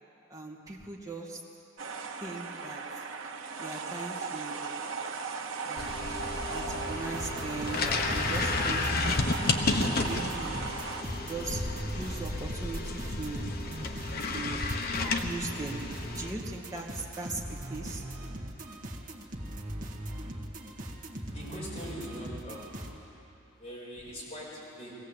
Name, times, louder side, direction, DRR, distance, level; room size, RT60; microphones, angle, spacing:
voice 1, 0.3-1.4 2.2-2.8 3.6-4.8 5.6-9.3 10.0-10.6 11.3-13.5 14.3-14.6 15.0-15.8 16.2-17.4 17.7-18.0, right 3 dB, 20° right, -2 dB, 2.4 m, -39 dB
sound 1, 1.8-11.0, right 4 dB, 85° right, 1.3 m, -37 dB
sound 2, 5.8-16.3, left 3 dB, 50° left, 1.2 m, -32 dB
sound 3, 7.1-23.0, right 1 dB, 45° right, 1.8 m, -40 dB
voice 2, 21.1-23.1 23.4-24.9, equal, 30° left, -6 dB, 6.7 m, -43 dB
22.0 x 17.0 x 8.3 m, 2.8 s
head